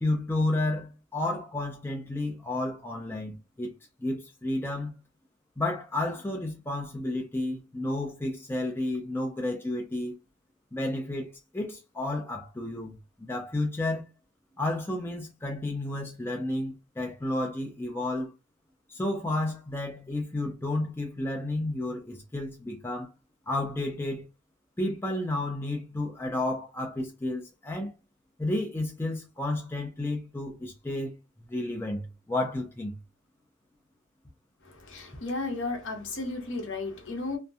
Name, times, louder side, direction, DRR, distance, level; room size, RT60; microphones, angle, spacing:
voice 1, 0.0-3.7 4.0-4.9 5.6-10.1 10.7-14.0 14.6-18.3 18.9-23.1 23.5-24.2 24.8-27.9 28.4-31.1 31.5-33.0, left 1 dB, 10° left, 0.3 m, -31 dB
voice 2, 34.6-37.4, left 3 dB, 60° left, 0.8 m, -34 dB
2.6 x 2.1 x 2.3 m
head